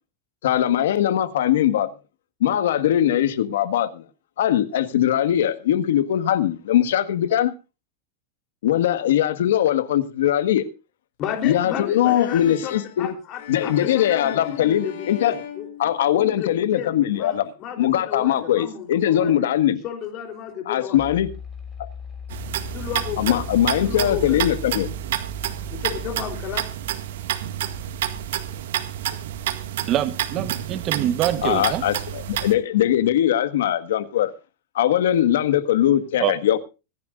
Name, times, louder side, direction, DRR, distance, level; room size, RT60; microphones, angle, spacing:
voice 1, 0.4-1.9 2.4-4.0 4.4-7.5 8.6-10.6 11.4-13.1 13.5-15.3 15.8-17.5 17.8-19.8 20.6-21.3 23.2-24.9 31.4-34.3 34.7-36.6, left 11 dB, 85° left, 1.6 m, -21 dB
voice 2, 11.2-15.7 16.1-19.5 19.8-21.1 22.7-23.4 23.8-24.5 25.7-26.6, left 8 dB, 35° left, 3.5 m, -32 dB
sound 1, 11.9-16.5, left 10 dB, 65° left, 6.7 m, -39 dB
sound 2, 21.0-30.1, left 2 dB, 15° left, 4.9 m, -39 dB
sound 3, 22.3-32.5, right 12 dB, 75° right, 1.9 m, -29 dB
voice 3, 29.9-31.9 36.2-36.3, right 11 dB, 30° right, 1.1 m, -24 dB
25.0 x 10.5 x 2.5 m
supercardioid pair, 160°, 0 cm